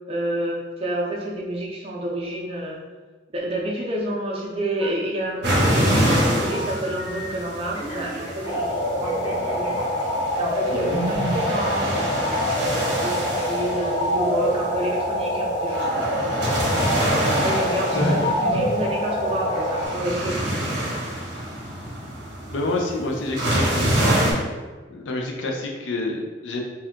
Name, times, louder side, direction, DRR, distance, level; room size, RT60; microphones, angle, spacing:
voice 1, 0.1-2.8 3.3-9.8 10.4-12.4 12.9-16.5 17.1-20.9 21.2-21.4, right 1 dB, 30° right, -3 dB, 0.5 m, -29 dB
Telephone, 4.8-5.4 5.7-7.4 7.7-10.5 10.8-11.0 11.3-11.5 11.8-12.0 12.2-12.4 12.7-12.9 13.2-13.4, left 1 dB, 20° left, 1.0 m, -35 dB
sound 1, 5.4-24.3, right 1 dB, 65° right, 0.8 m, -27 dB
sound 2, 8.4-19.9, equal, 65° left, 0.9 m, -25 dB
voice 2, 10.7-11.0 17.7-18.3 22.5-24.5 24.9-26.6, left 2 dB, 85° left, 1 dB, 0.5 m, -28 dB
2.7 x 2.3 x 3.5 m, 1.3 s
head